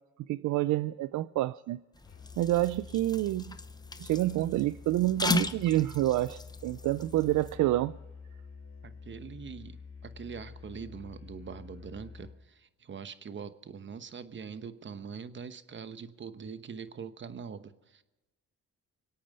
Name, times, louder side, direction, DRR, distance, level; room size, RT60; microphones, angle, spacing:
voice 1, 0.3-1.8 2.4-3.6 4.0-8.0, right 15 dB, 75° right, 16 dB, 0.5 m, -28 dB
sound 1, 1.9-7.6, left 3 dB, 15° left, 0.8 m, -36 dB
Musical instrument, 2.0-12.4, left 5 dB, 55° left, 2.8 m, -48 dB
voice 2, 8.8-18.0, right 6 dB, 40° right, 11 dB, 1.1 m, -43 dB
24.5 x 8.7 x 5.4 m, 1.1 s
cardioid pair, 90°, 30 cm